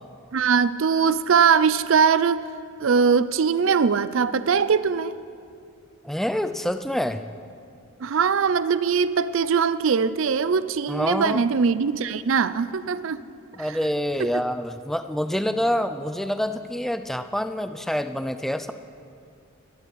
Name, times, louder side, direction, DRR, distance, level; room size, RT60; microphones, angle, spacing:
voice 1, 0.3-2.5 2.8-5.2 8.0-13.2 14.2-14.3, right 6 dB, 65° right, 15 dB, 0.4 m, -21 dB
voice 2, 6.0-7.2 10.9-11.5 13.5-18.7, equal, ahead, 10 dB, 0.4 m, -26 dB
23.5 x 10.0 x 4.1 m, 2.4 s
head